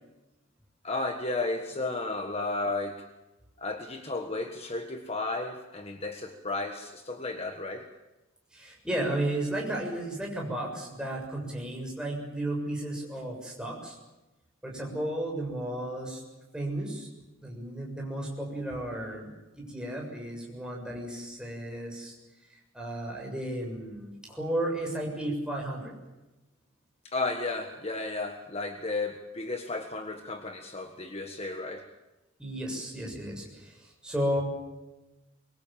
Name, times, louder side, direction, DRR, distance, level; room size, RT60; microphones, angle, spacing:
voice 1, 0.8-3.0 3.6-7.9 27.0-31.9, left 2 dB, 30° left, 5 dB, 1.6 m, -33 dB
voice 2, 8.5-14.0 14.6-16.2 16.5-17.1 17.4-22.1 22.5-25.9 32.4-34.4, right 1 dB, 5° right, -1 dB, 7.1 m, -34 dB
24.0 x 23.5 x 7.6 m, 1.0 s
head